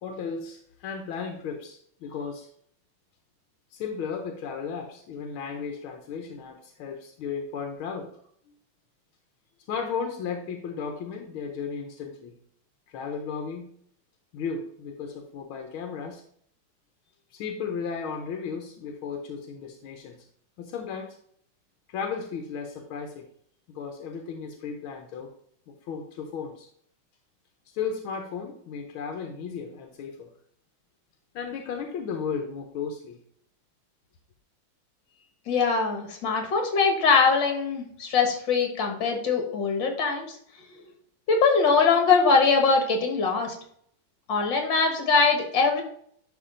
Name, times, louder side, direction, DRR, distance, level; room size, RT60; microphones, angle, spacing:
voice 1, 0.0-2.5 3.7-8.1 9.7-12.3 12.9-13.7 14.3-16.2 17.3-20.2 20.6-21.2 21.9-23.3 23.7-25.3 25.7-26.7 27.7-30.3 31.3-33.2, left 6 dB, 85° left, 4 dB, 1.7 m, -35 dB
voice 2, 35.5-40.4 41.3-43.6 44.3-45.8, left 4 dB, 65° left, 3 dB, 2.1 m, -22 dB
10.5 x 3.7 x 3.8 m, 0.64 s
omnidirectional pair, 2.2 m